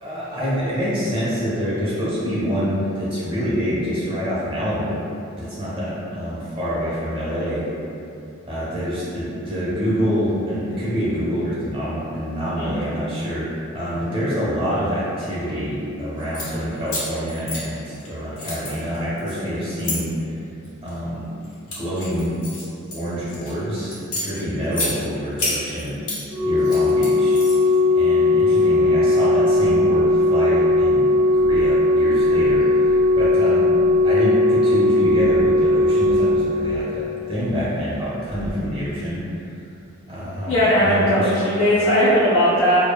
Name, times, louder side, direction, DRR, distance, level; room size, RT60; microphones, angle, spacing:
voice 1, 0.0-5.0 5.3-7.6 8.4-13.5 13.7-20.1 20.8-21.3 21.8-22.4 22.9-26.0 26.4-27.4 27.9-31.1 31.3-32.8 33.1-39.2 40.1-41.3, equal, 25° right, -9 dB, 0.8 m, -26 dB
sound 1, 16.2-16.5 16.9-18.1 18.4-20.0 20.6-21.0 21.4-23.5 23.9-24.9 25.4-26.2 26.6-27.8, left 2 dB, 85° left, 1.0 m, -29 dB
Organ, 26.3-37.2 38.3-38.5, left 2 dB, 10° left, 0.4 m, -18 dB
voice 2, 40.5-42.8, equal, 65° left, -10 dB, 0.5 m, -18 dB
2.7 x 2.4 x 2.2 m, 2.7 s
head